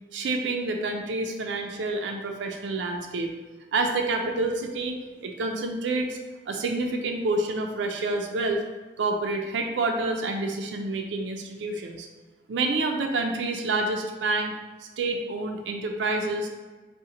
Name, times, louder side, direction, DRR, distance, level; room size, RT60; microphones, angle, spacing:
voice 1, 0.1-3.3 3.7-6.2 6.5-8.6 9.0-12.1 12.5-14.5 14.8-16.5, right 2 dB, 85° right, 3 dB, 0.4 m, -28 dB
4.1 x 2.1 x 3.7 m, 1.3 s
head